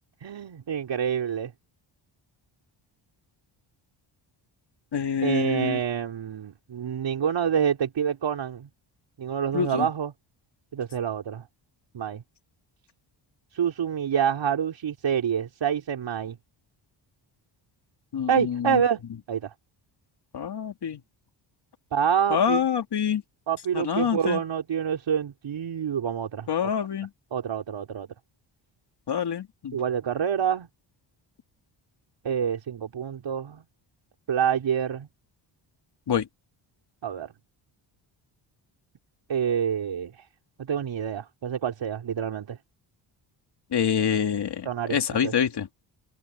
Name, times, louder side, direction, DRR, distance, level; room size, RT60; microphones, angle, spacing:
voice 1, 0.2-1.5 5.2-8.7 9.2-10.1 10.7-11.4 11.9-12.2 13.5-16.4 18.3-19.0 19.3-19.5 21.9-22.6 23.5-26.7 27.3-28.1 29.7-30.7 32.2-33.6 34.3-35.1 37.0-37.3 39.3-40.1 40.7-42.6 44.6-45.3, right 8 dB, 65° right, 4.4 m, -27 dB
voice 2, 4.9-5.8 9.5-9.9 18.1-18.8 20.3-21.0 22.3-23.2 23.7-24.4 26.5-27.1 29.1-29.8 36.1-36.3 43.7-45.7, left 7 dB, 55° left, 3.0 m, -26 dB
cardioid pair, 90°, 48 cm